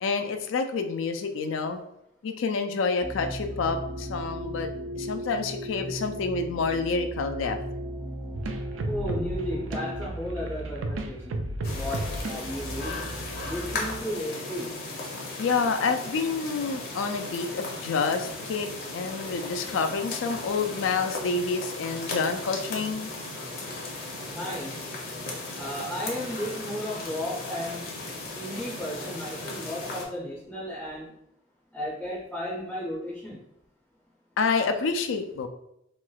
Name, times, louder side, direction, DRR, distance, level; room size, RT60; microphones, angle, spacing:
voice 1, 0.0-1.8 2.2-4.7 5.0-7.6 15.4-18.7 18.9-23.1 34.4-35.5, left 4 dB, 75° left, 6 dB, 0.4 m, -28 dB
sound 1, 3.0-10.1, equal, 60° right, 1.2 m, -36 dB
sound 2, 8.3-14.0, right 2 dB, 85° right, 0.4 m, -34 dB
voice 2, 8.8-13.0 13.4-14.7 24.3-24.9 25.5-28.0 28.3-31.1 31.7-33.4, equal, 5° left, -6 dB, 0.5 m, -34 dB
sound 3, 11.6-30.1, left 2 dB, 50° left, 0.7 m, -36 dB
3.1 x 2.9 x 2.3 m, 0.78 s
head